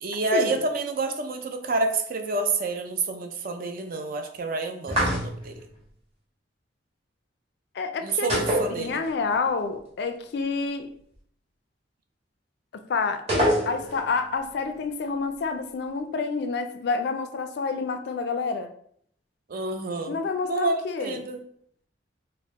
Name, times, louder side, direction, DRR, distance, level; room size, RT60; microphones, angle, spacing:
voice 1, 0.0-5.6 8.0-9.0 19.5-20.2 20.4-20.7 21.0-21.4, right 3 dB, 50° right, 0.5 m, -28 dB
sound 1, 4.9-5.6 8.3-9.3 9.6-9.7 13.3-14.1, equal, 35° right, 1.4 m, -25 dB
voice 2, 7.7-8.3 8.8-10.9 12.7-18.7 20.1-21.2, left 4 dB, 60° left, 0.4 m, -28 dB
4.4 x 2.1 x 3.5 m
head